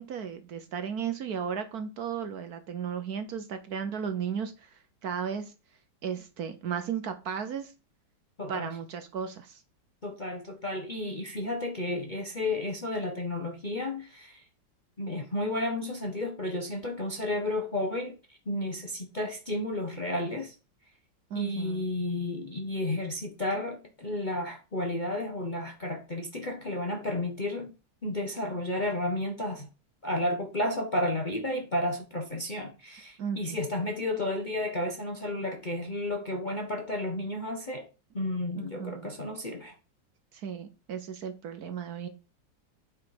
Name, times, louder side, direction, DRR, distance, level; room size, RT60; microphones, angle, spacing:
voice 1, 0.0-5.5 6.0-7.7 8.5-9.6 21.3-21.9 33.2-33.6 38.6-39.1 40.3-42.1, right 7 dB, 60° right, 1.2 m, -35 dB
voice 2, 8.4-8.7 10.0-14.4 15.0-18.2 18.5-20.5 21.3-27.7 28.0-29.7 30.0-37.9 38.1-39.7, left 1 dB, 35° left, 0.8 m, -32 dB
8.3 x 4.8 x 4.8 m
omnidirectional pair, 2.1 m